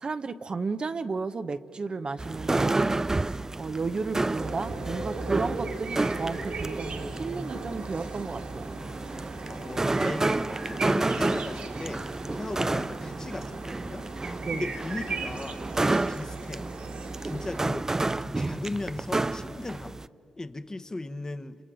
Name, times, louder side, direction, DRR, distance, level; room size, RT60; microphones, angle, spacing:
voice 1, 0.0-2.9 3.6-8.7 14.4-14.7, right 4 dB, 45° right, 9 dB, 0.9 m, -33 dB
sound 1, 2.2-20.1, right 2 dB, 25° right, 0.5 m, -30 dB
sound 2, 4.3-17.6, right 3 dB, 75° right, 3.0 m, -38 dB
voice 2, 9.5-14.0 14.5-16.7 17.2-17.9 18.2-20.0 20.4-21.6, left 2 dB, 25° left, 10 dB, 1.3 m, -37 dB
29.5 x 29.0 x 5.1 m, 2.8 s
cardioid pair, 55°, 2 cm